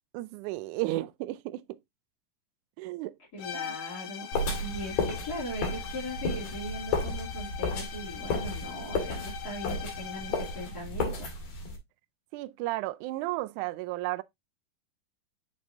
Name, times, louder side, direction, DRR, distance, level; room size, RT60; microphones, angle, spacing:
voice 1, 0.1-1.6 2.8-3.1 3.5-3.8 12.3-14.2, right 18 dB, 90° right, 1.7 m, -33 dB
voice 2, 3.3-11.3, equal, 30° left, 3.0 m, -39 dB
sound 1, 3.4-10.8, left 9 dB, 80° left, 1.3 m, -42 dB
sound 2, 4.3-11.8, left 3 dB, 55° left, 3.1 m, -33 dB
6.2 x 6.1 x 2.7 m
omnidirectional pair, 4.1 m